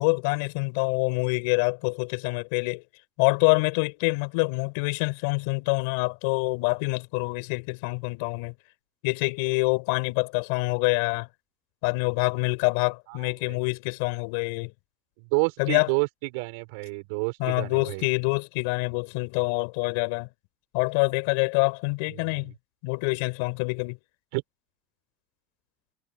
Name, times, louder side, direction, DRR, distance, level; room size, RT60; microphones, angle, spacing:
voice 1, 0.0-2.8 3.2-8.5 9.0-11.3 11.8-14.7 15.6-15.9 17.4-20.3 20.7-22.5 22.8-24.0, left 29 dB, 70° left, 4.4 m, -26 dB
voice 2, 13.1-13.6 15.2-18.1 22.1-22.5 24.3-24.4, right 30 dB, 70° right, 4.5 m, -30 dB
cardioid pair, 170°, 0 cm